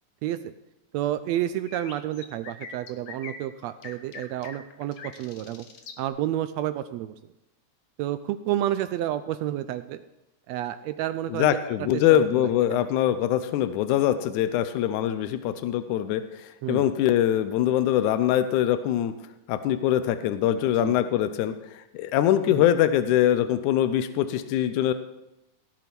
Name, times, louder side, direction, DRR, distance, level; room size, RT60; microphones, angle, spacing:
voice 1, 0.2-0.5 0.9-5.7 6.0-7.1 8.0-10.0 10.5-11.6 11.9-12.8 16.6-16.8 20.8-21.0 22.5-22.6, right 12 dB, 80° right, 11 dB, 1.5 m, -30 dB
sound 1, 1.7-6.0, left 6 dB, 60° left, 1.2 m, -43 dB
voice 2, 11.3-19.1 19.5-24.9, left 11 dB, 80° left, 11 dB, 2.1 m, -23 dB
17.0 x 6.8 x 6.0 m, 0.93 s
omnidirectional pair, 3.5 m